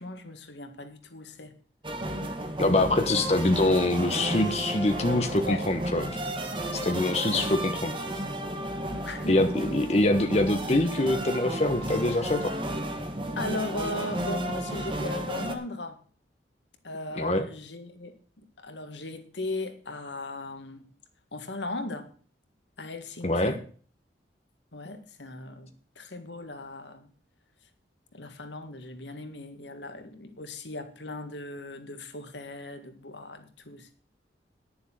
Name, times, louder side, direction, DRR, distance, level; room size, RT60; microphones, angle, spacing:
voice 1, 0.0-1.5 5.5-5.7 6.8-7.9 8.9-9.6 13.4-16.0 16.8-18.2 18.6-20.9 21.3-22.1 22.8-23.6 24.7-27.1 28.1-33.9, left 2 dB, 80° left, 1.7 m, -38 dB
sound 1, 1.8-15.6, right 1 dB, 30° right, 1.4 m, -33 dB
voice 2, 2.6-6.2 6.8-8.0 9.3-12.5 17.2-17.5 23.2-23.6, left 2 dB, 35° left, 1.1 m, -24 dB
10.0 x 7.0 x 7.4 m
head